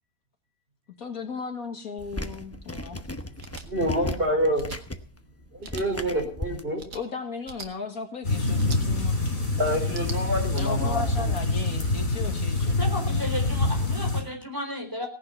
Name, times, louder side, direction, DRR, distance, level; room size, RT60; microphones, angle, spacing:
voice 1, 1.0-3.0 6.9-9.2 10.6-13.2, left 4 dB, 60° left, 5 dB, 2.2 m, -36 dB
sound 1, 2.0-6.6, left 1 dB, 15° left, 0.7 m, -36 dB
sound 2, 3.4-3.7 4.5-4.8 5.6-5.9 6.8-7.0 7.4-7.7 8.6-8.8 9.8-10.6, right 5 dB, 90° right, 2.2 m, -41 dB
voice 2, 3.7-4.7 5.5-6.8 9.2-11.0, equal, 35° right, 3 dB, 4.7 m, -27 dB
sound 3, 8.2-14.2, left 2 dB, 40° left, 4.4 m, -26 dB
voice 3, 12.8-15.1, left 1 dB, 10° right, 3 dB, 4.0 m, -33 dB
17.5 x 10.5 x 5.7 m, 0.41 s
omnidirectional pair, 1.7 m